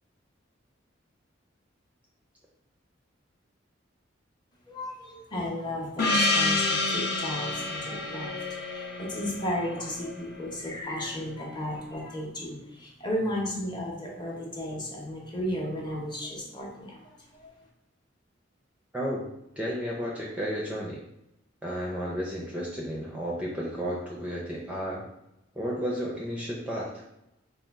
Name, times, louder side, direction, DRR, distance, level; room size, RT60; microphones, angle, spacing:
voice 1, 4.7-17.5, left 1 dB, 25° left, -2 dB, 0.8 m, -34 dB
Gong, 6.0-10.8, left 2 dB, 55° left, 0.5 m, -29 dB
voice 2, 18.9-19.3 19.6-21.0 21.6-25.0 25.5-27.0, equal, 5° right, -4 dB, 0.5 m, -32 dB
4.2 x 2.3 x 3.4 m, 0.87 s
head